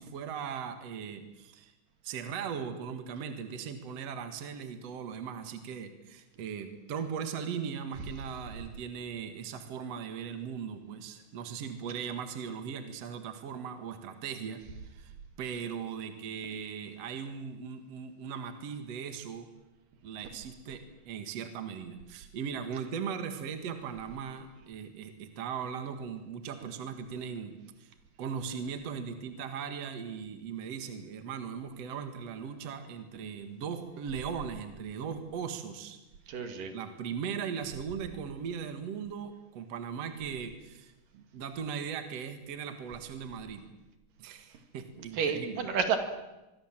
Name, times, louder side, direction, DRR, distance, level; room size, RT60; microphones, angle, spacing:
voice 1, 0.0-1.7 2.0-14.6 14.9-15.1 15.4-19.5 20.0-27.9 28.2-36.0 36.7-43.6 44.2-45.7, right 7 dB, 55° right, 7 dB, 2.7 m, -38 dB
voice 2, 36.3-36.7 45.1-46.0, right 6 dB, 75° right, 7 dB, 3.8 m, -30 dB
24.5 x 23.0 x 7.6 m, 1.0 s
omnidirectional pair, 3.9 m